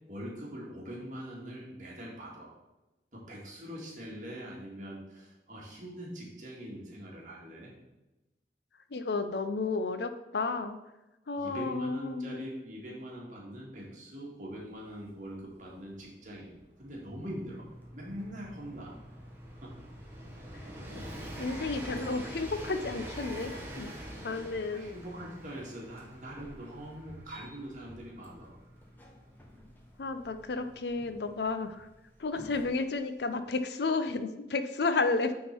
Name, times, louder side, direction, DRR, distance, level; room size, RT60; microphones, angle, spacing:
voice 1, 0.1-2.5 3.1-7.7 11.4-19.0 19.6-19.7 24.3-28.6, equal, 45° right, -3 dB, 1.9 m, -43 dB
voice 2, 8.9-10.8 11.3-12.4 20.9-21.0 21.4-23.9 24.2-25.0 30.0-31.9 32.2-35.3, left 3 dB, 70° left, 10 dB, 0.5 m, -32 dB
Train, 14.7-14.8 15.0-31.6 32.6-32.7, equal, 15° right, 1.3 m, -46 dB
sound 1, 17.2-32.7, equal, 10° left, 0.9 m, -53 dB
9.3 x 3.8 x 4.5 m, 1.0 s
head